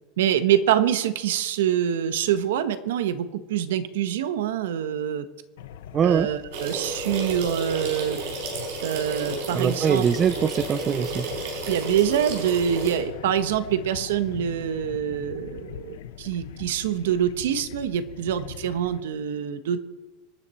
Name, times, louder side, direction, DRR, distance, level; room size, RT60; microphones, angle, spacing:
voice 1, 0.2-5.2 6.0-8.2 8.8-10.1 11.7-19.8, right 9 dB, 80° right, 11 dB, 1.3 m, -25 dB
sound 1, 5.6-19.0, left 10 dB, 75° left, 1.0 m, -41 dB
voice 2, 5.9-6.3 9.5-11.3, right 7 dB, 20° right, 15 dB, 0.4 m, -22 dB
sound 2, 6.5-13.0, right 3 dB, 60° right, 4.9 m, -32 dB
25.5 x 10.0 x 4.4 m, 1.2 s
supercardioid pair, 175°, 0 cm